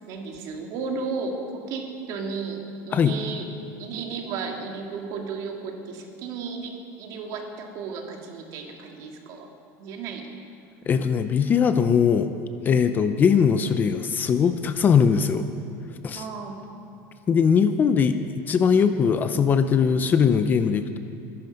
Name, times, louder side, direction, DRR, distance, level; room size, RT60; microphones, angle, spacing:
voice 1, 0.1-3.5 3.8-9.5 9.8-10.3 16.1-16.6, right 4 dB, 50° right, 2 dB, 2.2 m, -34 dB
voice 2, 10.9-12.3 12.6-15.5 16.0-16.2 17.3-18.2 18.5-21.0, left 6 dB, 25° left, 9 dB, 0.6 m, -20 dB
23.0 x 11.5 x 5.3 m, 2.4 s
cardioid pair, 160°, 8 cm